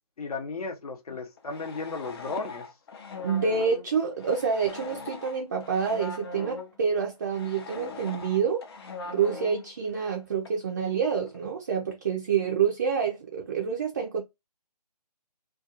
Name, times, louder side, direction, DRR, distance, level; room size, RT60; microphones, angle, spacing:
voice 1, 0.2-2.7, left 3 dB, 60° left, 0.8 m, -34 dB
sound 1, 1.1-6.8 7.2-10.2 10.4-10.5 11.1-11.4, left 3 dB, 35° left, 0.6 m, -41 dB
voice 2, 3.2-8.6 9.1-14.2, right 6 dB, 25° right, 0.4 m, -27 dB
2.4 x 2.3 x 2.8 m
figure-of-eight pair, 145°, 21 cm